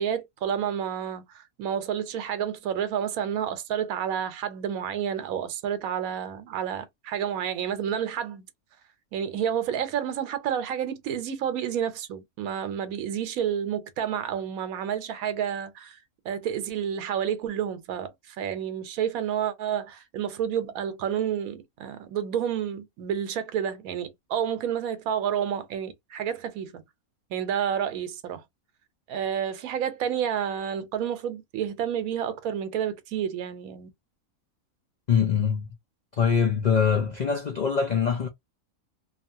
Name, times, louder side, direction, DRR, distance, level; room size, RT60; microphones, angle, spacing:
voice 1, 0.0-8.4 9.1-16.0 16.2-26.8 27.3-28.4 29.1-33.9, right 9 dB, 80° right, 1.1 m, -30 dB
voice 2, 35.1-35.7 36.1-38.3, left 7 dB, 70° left, 0.4 m, -23 dB
2.7 x 2.4 x 2.6 m
omnidirectional pair, 1.5 m